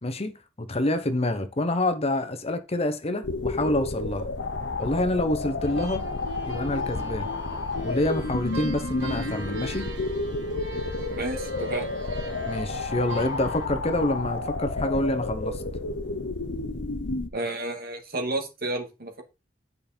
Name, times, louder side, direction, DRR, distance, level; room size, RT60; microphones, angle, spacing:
voice 1, 0.0-4.3 4.8-6.1 6.5-7.3 7.8-9.9 12.5-15.6, left 1 dB, 35° left, 1.0 m, -27 dB
sound 1, 3.2-17.3, left 2 dB, 80° left, 1.1 m, -31 dB
sound 2, 5.6-13.7, right 1 dB, 80° right, 2.9 m, -40 dB
voice 2, 11.1-11.9 17.3-19.2, right 2 dB, 55° right, 2.1 m, -31 dB
9.4 x 5.3 x 4.4 m
head